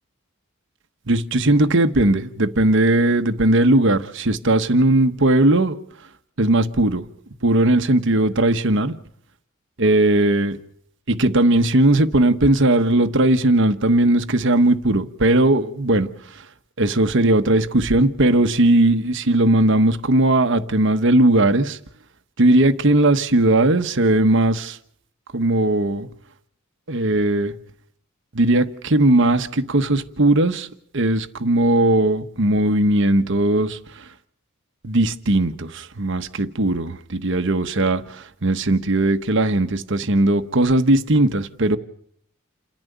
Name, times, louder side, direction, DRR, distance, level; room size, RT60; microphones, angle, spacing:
voice 1, 1.1-5.8 6.4-7.1 7.4-8.9 9.8-10.6 11.1-16.1 16.8-21.8 22.4-24.8 25.3-26.1 26.9-27.5 28.3-30.7 30.9-34.0 34.8-41.8, right 1 dB, 60° right, 1.1 m, -18 dB
28.5 x 10.5 x 9.4 m
head